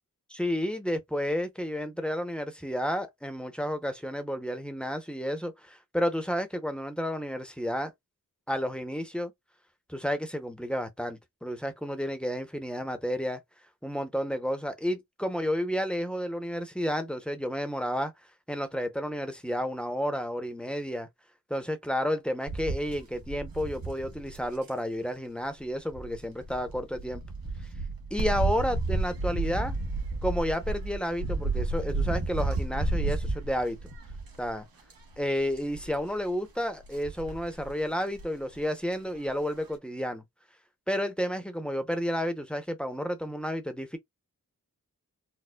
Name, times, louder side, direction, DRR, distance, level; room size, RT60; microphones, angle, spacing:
voice 1, 0.3-7.9 8.5-9.3 9.9-13.4 13.8-18.1 18.5-21.1 21.5-27.2 28.1-29.7 30.2-33.8 34.4-34.6 35.2-40.2 40.9-44.0, equal, 5° left, 0.7 m, -31 dB
sound 1, 22.5-24.7 25.9-34.5 34.9-35.2 35.5-36.0 36.8-37.7 38.2-38.3 38.5-38.6, right 2 dB, 85° right, 1.0 m, -32 dB
4.3 x 2.1 x 2.3 m
wide cardioid pair, 90°, 35 cm